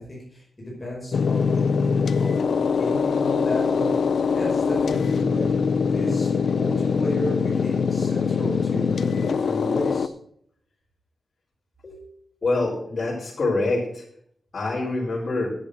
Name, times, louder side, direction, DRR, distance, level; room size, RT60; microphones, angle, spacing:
voice 1, 0.0-5.5 5.9-10.1, left 1 dB, 15° left, -5 dB, 5.2 m, -33 dB
sound 1, 1.1-10.1, left 5 dB, 70° left, 0.6 m, -23 dB
voice 2, 12.4-14.0 14.5-15.5, left 2 dB, 40° left, -8 dB, 4.3 m, -25 dB
10.5 x 8.8 x 6.4 m, 0.67 s
wide cardioid pair, 175°, 0 cm